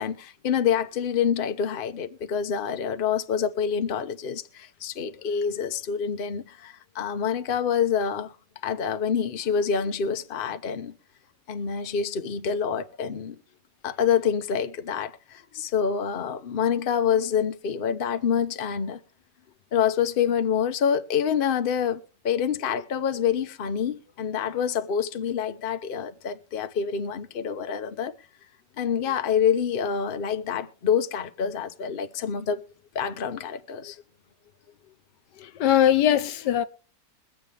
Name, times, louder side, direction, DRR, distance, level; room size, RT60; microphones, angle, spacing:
voice 1, 0.0-8.3 8.6-11.0 11.5-13.4 13.8-19.0 19.7-28.1 28.8-32.6 32.9-34.0, left 7 dB, 40° left, 0.9 m, -27 dB
voice 2, 35.4-36.6, left 11 dB, 85° left, 1.5 m, -21 dB
23.0 x 7.8 x 3.4 m
omnidirectional pair, 1.8 m